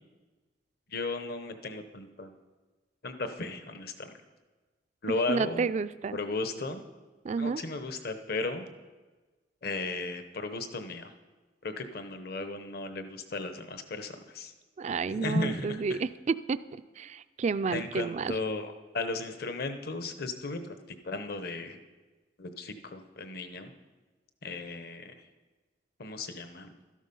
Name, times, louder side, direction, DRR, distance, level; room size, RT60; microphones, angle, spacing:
voice 1, 0.9-2.3 3.0-4.1 5.0-5.6 6.1-6.8 7.4-8.6 9.6-11.1 11.6-14.5 15.1-16.0 17.7-20.8 21.0-21.8 22.4-23.7 24.4-25.1 26.0-26.8, left 3 dB, 60° left, 8 dB, 1.0 m, -35 dB
voice 2, 5.3-6.2 7.2-7.6 14.8-16.6 17.0-18.4, right 5 dB, 40° right, 14 dB, 0.3 m, -30 dB
13.0 x 11.0 x 5.4 m, 1.3 s
head